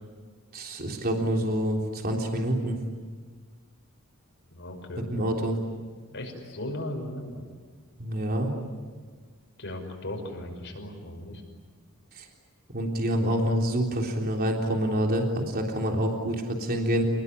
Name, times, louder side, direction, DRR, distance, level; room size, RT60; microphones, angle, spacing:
voice 1, 0.5-2.8 5.0-5.6 8.0-8.5 12.2-12.3 12.7-17.1, right 1 dB, 45° right, 1 dB, 3.5 m, -27 dB
voice 2, 4.5-5.1 6.1-7.4 9.6-11.4, left 1 dB, 55° left, 4 dB, 5.8 m, -37 dB
28.5 x 21.0 x 9.9 m, 1.5 s
head